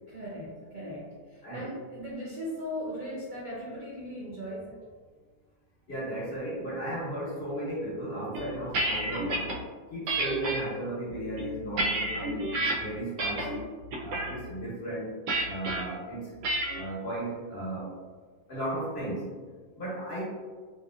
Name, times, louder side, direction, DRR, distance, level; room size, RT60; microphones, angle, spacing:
voice 1, 0.1-4.8, equal, 70° right, -8 dB, 0.4 m, -38 dB
voice 2, 5.9-9.6 9.9-13.6 14.0-15.1 15.4-16.3 16.7-17.9 18.5-19.4 19.8-20.2, right 1 dB, 50° left, -7 dB, 0.9 m, -35 dB
sound 1, 8.3-9.6 10.1-10.6 11.2-12.7 13.2-13.6 13.9-14.3 15.3-15.8 16.4-16.8, right 1 dB, 85° right, 1.2 m, -29 dB
2.9 x 2.8 x 2.3 m, 1.5 s
omnidirectional pair, 1.7 m